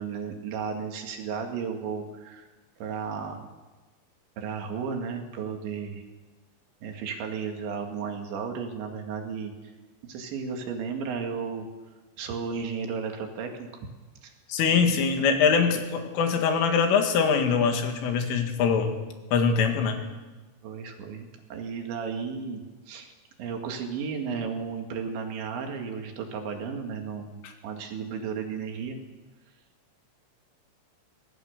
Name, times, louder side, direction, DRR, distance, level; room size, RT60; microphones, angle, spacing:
voice 1, 0.0-2.5 2.8-3.5 4.4-6.0 6.8-9.5 10.0-11.7 12.2-13.7 14.2-14.3 14.7-14.9 20.6-23.1 23.4-29.0, right 6 dB, 70° right, 3 dB, 4.2 m, -34 dB
voice 2, 14.5-18.9 19.3-20.0, left 6 dB, 80° left, 5 dB, 4.5 m, -23 dB
24.0 x 17.5 x 6.6 m, 1.2 s
omnidirectional pair, 5.7 m